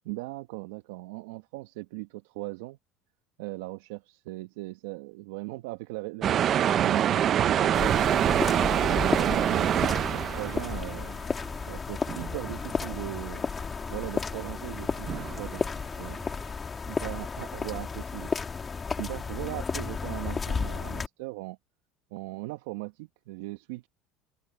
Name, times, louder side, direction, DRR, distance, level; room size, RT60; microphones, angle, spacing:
voice 1, 0.0-2.8 3.4-8.2 8.7-11.2 11.7-13.4 13.9-15.6 16.0-16.3 16.9-18.3 19.0-21.6 22.1-23.9, right 21 dB, 80° right, 1.2 m, -38 dB
sound 1, 6.2-11.0 11.4-11.8 12.1-12.8 14.4-14.5 15.0-15.9, right 10 dB, 50° right, 0.8 m, -25 dB
sound 2, 7.7-21.1, left 5 dB, 30° left, 2.7 m, -33 dB
open air
hypercardioid pair, 75°, 0 cm